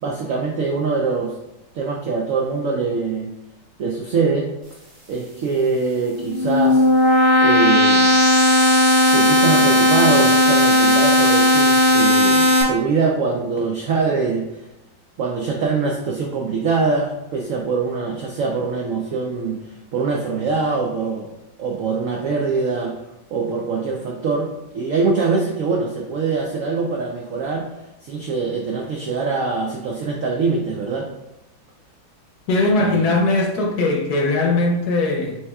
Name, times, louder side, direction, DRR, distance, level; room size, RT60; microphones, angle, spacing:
voice 1, 0.0-1.3 1.7-3.3 3.8-4.5 5.1-6.8 7.4-8.1 9.1-14.7 15.2-21.3 21.6-22.9 23.3-27.7 28.0-31.1 32.8-33.2, right 4 dB, 85° right, 0 dB, 0.7 m, -23 dB
sound 1, 6.1-12.6, left 1 dB, 35° right, 1.7 m, -15 dB
voice 2, 32.5-35.4, left 2 dB, 65° left, 1 dB, 1.1 m, -19 dB
7.7 x 2.8 x 2.3 m, 0.92 s
omnidirectional pair, 2.0 m